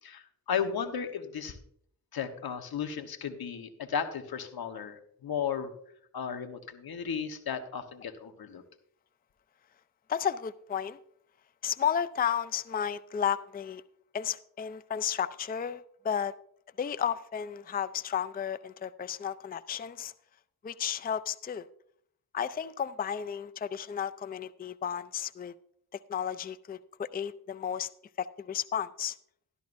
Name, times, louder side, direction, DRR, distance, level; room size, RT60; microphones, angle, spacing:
voice 1, 0.0-1.6 2.1-5.7 6.1-8.6, left 7 dB, 75° left, 1.2 m, -35 dB
voice 2, 10.1-11.0 11.6-13.8 14.1-16.3 16.8-20.1 20.6-21.7 22.3-25.5 25.9-27.9 28.2-29.2, left 8 dB, 25° left, 0.4 m, -33 dB
12.5 x 12.5 x 2.6 m
cardioid pair, 65°, 37 cm